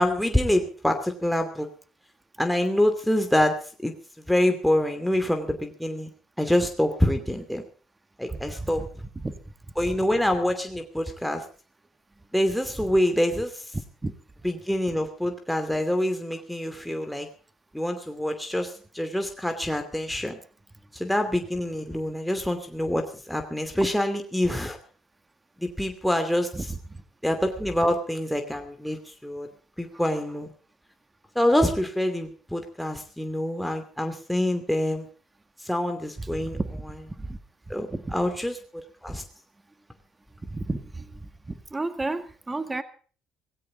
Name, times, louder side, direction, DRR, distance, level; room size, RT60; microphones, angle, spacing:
voice 1, 0.0-1.7 2.4-3.5 3.8-3.9 4.3-6.1 6.4-7.6 8.2-8.9 9.8-11.4 12.3-13.6 14.4-17.3 17.7-20.4 20.9-24.8 25.6-26.7 27.2-29.5 29.8-30.5 31.3-35.1 35.6-36.6 37.7-39.2, left 1 dB, ahead, 4 dB, 2.6 m, -26 dB
voice 2, 8.3-8.7 9.2-9.3 14.0-14.1 26.5-26.6 26.9-27.0 36.2-36.8 37.2-37.4 37.9-38.1 40.5-41.1 41.5-42.8, right 2 dB, 20° right, 10 dB, 1.9 m, -32 dB
17.5 x 16.0 x 3.9 m, 0.40 s
supercardioid pair, 70°, 0 cm